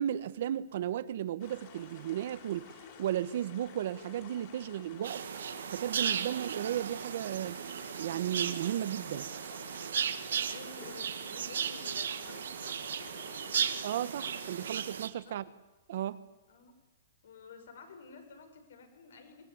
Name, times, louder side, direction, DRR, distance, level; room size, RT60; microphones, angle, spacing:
voice 1, 0.0-2.7 3.0-5.2 5.7-7.6 8.0-9.3 13.8-15.5 15.9-16.2, right 11 dB, 50° right, 1.3 m, -34 dB
sound 1, 1.4-14.7, left 7 dB, 35° left, 4.8 m, -52 dB
sound 2, 5.0-15.1, right 8 dB, 85° right, 1.9 m, -36 dB
voice 2, 10.5-13.5 15.2-15.4 16.5-16.7 17.2-19.5, left 5 dB, 70° left, 6.0 m, -52 dB
25.0 x 20.5 x 9.7 m
hypercardioid pair, 170°, 0 cm